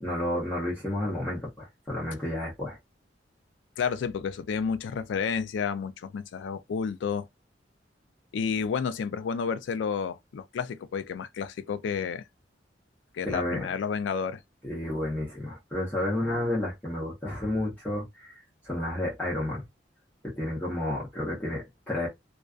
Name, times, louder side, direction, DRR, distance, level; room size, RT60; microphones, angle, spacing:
voice 1, 0.0-2.8 13.3-13.6 14.6-18.4 18.6-19.6 20.2-22.1, left 1 dB, 10° left, 0.8 m, -31 dB
voice 2, 3.8-7.3 8.3-12.2 13.1-14.4, left 6 dB, 80° left, 0.3 m, -31 dB
2.4 x 2.3 x 2.3 m
head